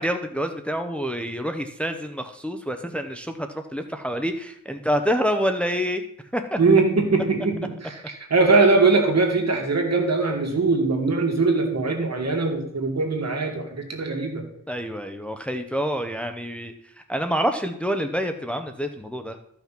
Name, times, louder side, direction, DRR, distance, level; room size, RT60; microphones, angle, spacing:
voice 1, 0.0-6.0 6.3-6.6 14.7-19.4, equal, 5° left, 6 dB, 0.8 m, -27 dB
voice 2, 6.6-8.0 8.3-14.5, right 3 dB, 60° right, 2 dB, 2.5 m, -21 dB
13.5 x 5.9 x 5.9 m, 0.71 s
wide cardioid pair, 110°, 30 cm